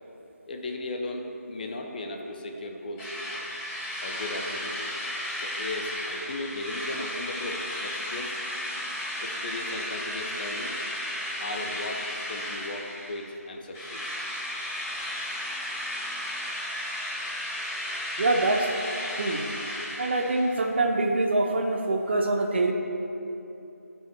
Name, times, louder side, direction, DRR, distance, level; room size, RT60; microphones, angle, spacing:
voice 1, 0.5-3.1 4.0-5.0 5.4-8.4 9.2-10.8 11.4-14.0, left 2 dB, 35° left, 3 dB, 0.7 m, -36 dB
Drill, 3.0-13.4 13.7-20.6, left 1 dB, 15° left, 1.5 m, -34 dB
voice 2, 18.2-18.7 19.2-19.5 20.0-22.7, right 2 dB, 45° right, 3 dB, 0.9 m, -25 dB
13.0 x 5.8 x 4.3 m, 2.8 s
figure-of-eight pair, 155°, 9 cm